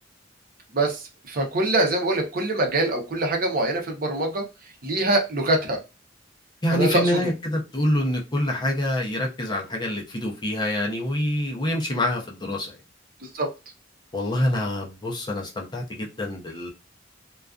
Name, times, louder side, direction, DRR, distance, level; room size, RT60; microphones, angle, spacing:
voice 1, 0.7-4.4 4.8-5.8 6.7-7.1 13.2-13.5, right 2 dB, 50° right, 0.7 m, -24 dB
voice 2, 6.6-12.7 14.1-16.7, left 1 dB, 25° left, 0.6 m, -26 dB
2.4 x 2.3 x 2.3 m
head